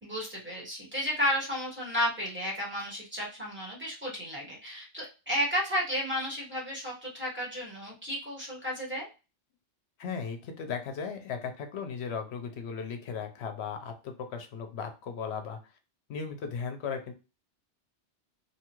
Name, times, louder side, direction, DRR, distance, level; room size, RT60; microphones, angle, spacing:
voice 1, 0.0-9.1, equal, 10° right, -4 dB, 1.2 m, -32 dB
voice 2, 10.0-15.6 16.1-17.1, left 6 dB, 70° left, 6 dB, 0.8 m, -36 dB
2.8 x 2.3 x 2.9 m, 0.30 s
omnidirectional pair, 1.2 m